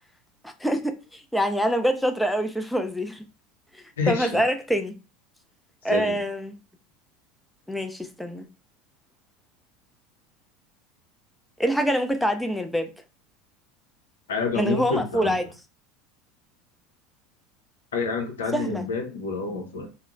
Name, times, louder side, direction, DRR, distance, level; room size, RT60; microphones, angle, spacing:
voice 1, 0.4-3.2 3.7-5.0 5.8-6.6 7.7-8.5 11.6-12.9 14.5-15.5 18.5-18.9, equal, 5° left, 0.4 m, -25 dB
voice 2, 4.0-4.4 5.9-6.2 14.3-15.4 17.9-19.9, left 4 dB, 85° left, 0.7 m, -28 dB
3.6 x 2.1 x 2.3 m
hypercardioid pair, 85°, 0 cm